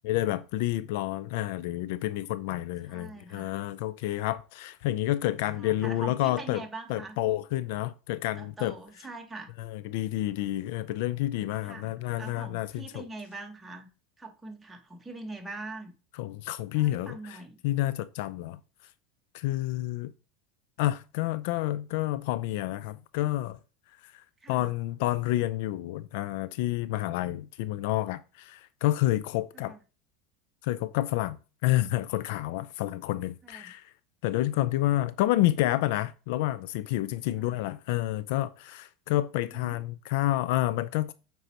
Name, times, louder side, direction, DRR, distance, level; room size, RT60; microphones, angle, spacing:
voice 1, 0.0-6.6 6.9-8.8 9.6-13.1 16.1-18.6 19.3-20.1 20.8-23.6 24.0-29.7 30.6-31.4 31.6-33.9 34.2-41.1, left 15 dB, 70° left, 0.4 m, -29 dB
voice 2, 2.9-3.5 5.5-7.2 8.4-9.5 11.6-13.9 14.2-15.9 16.7-17.6 24.4-24.7 29.5-29.8 33.4-33.7 37.3-37.6 39.5-39.8, right 3 dB, 10° right, 1.4 m, -43 dB
8.0 x 4.6 x 2.9 m
supercardioid pair, 130°, 0 cm